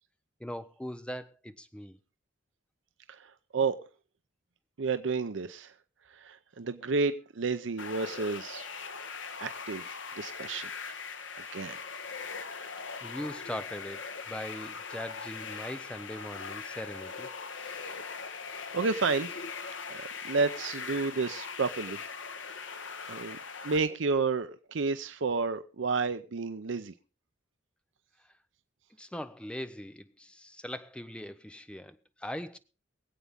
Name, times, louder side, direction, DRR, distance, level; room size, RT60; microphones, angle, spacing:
voice 1, 0.4-2.0 13.0-17.3 17.6-17.9 28.2-28.3 28.9-32.6, equal, 5° left, 0.7 m, -41 dB
voice 2, 3.1-3.8 4.8-5.7 6.1-8.7 9.4-10.7 11.5-11.7 17.7-18.0 18.7-19.3 19.9-22.0 23.1-23.4 23.6-26.9, right 4 dB, 75° right, 0.6 m, -31 dB
sound 1, 7.8-23.8, left 5 dB, 75° left, 1.2 m, -40 dB
23.5 x 8.3 x 3.6 m
head